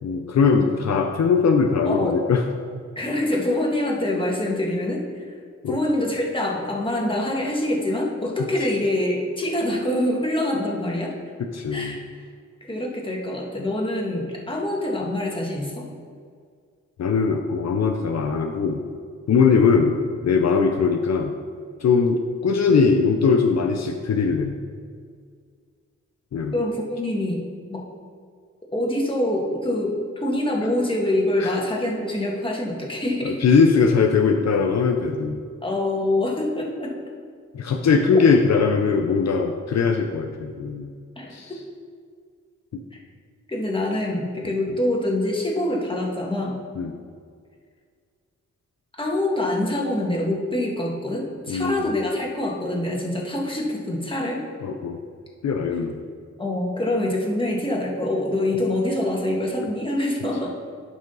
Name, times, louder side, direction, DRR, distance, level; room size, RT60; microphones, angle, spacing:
voice 1, 0.0-2.4 5.6-5.8 11.5-11.9 17.0-18.8 19.3-20.0 20.2-21.3 21.8-24.6 26.3-26.6 31.4-31.6 33.2-35.4 37.5-40.9 41.3-41.6 42.7-42.8 46.8-46.9 51.5-51.9 54.6-55.0 55.4-56.0, left 5 dB, 60° left, 4 dB, 0.7 m, -20 dB
voice 2, 1.9-2.2 3.0-5.2 5.7-11.1 11.7-12.0 12.7-15.9 26.5-27.4 27.7-27.8 28.7-33.4 35.6-36.9 38.1-38.2 41.2-41.6 43.5-46.6 49.0-54.4 56.4-60.5, left 1 dB, 15° left, -2 dB, 2.0 m, -25 dB
11.5 x 5.1 x 4.0 m, 2.1 s
cardioid pair, 65°, 30 cm